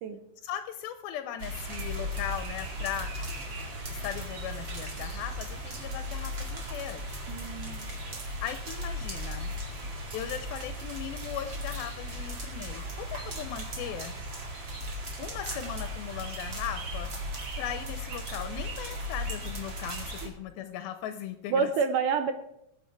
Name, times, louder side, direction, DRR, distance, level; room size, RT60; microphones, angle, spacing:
voice 1, 0.4-3.1 3.9-7.2 8.4-9.6 10.1-14.2 15.2-17.1 17.6-21.7, left 10 dB, 80° left, 9 dB, 2.5 m, -38 dB
sound 1, 1.4-20.3, equal, 35° right, 2.5 m, -37 dB
voice 2, 7.3-7.9 20.2-20.3 21.5-22.3, right 5 dB, 75° right, 8 dB, 2.0 m, -28 dB
19.5 x 8.0 x 4.6 m, 0.79 s
omnidirectional pair, 4.3 m